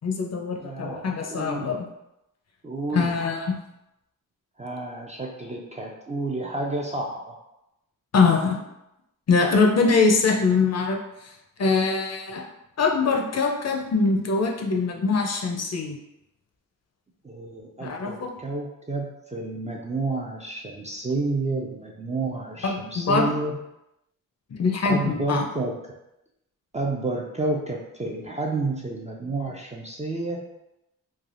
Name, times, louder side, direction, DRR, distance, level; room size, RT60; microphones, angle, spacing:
voice 1, 0.0-1.9 2.9-3.6 8.1-8.6 9.3-11.0 11.6-12.4 12.8-16.0 17.8-18.3 22.6-23.3 24.5-25.4, left 4 dB, 50° left, 1 dB, 0.5 m, -23 dB
voice 2, 0.6-1.7 2.6-3.1 4.6-7.4 17.2-23.6 24.8-25.7 26.7-30.4, right 2 dB, 20° right, -1 dB, 0.3 m, -30 dB
3.2 x 2.3 x 2.4 m, 0.87 s
wide cardioid pair, 90°, 34 cm